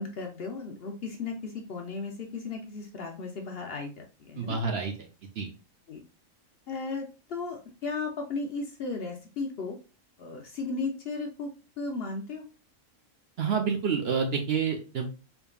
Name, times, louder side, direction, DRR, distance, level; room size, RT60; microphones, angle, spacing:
voice 1, 0.0-4.6 5.9-6.0 6.7-9.8 10.2-11.5 11.8-12.4, left 3 dB, 55° left, 3 dB, 0.7 m, -35 dB
voice 2, 4.4-4.9 5.4-5.5 13.4-15.2, right 6 dB, 60° right, 3 dB, 0.7 m, -28 dB
4.4 x 3.5 x 2.3 m, 0.32 s
omnidirectional pair, 1.4 m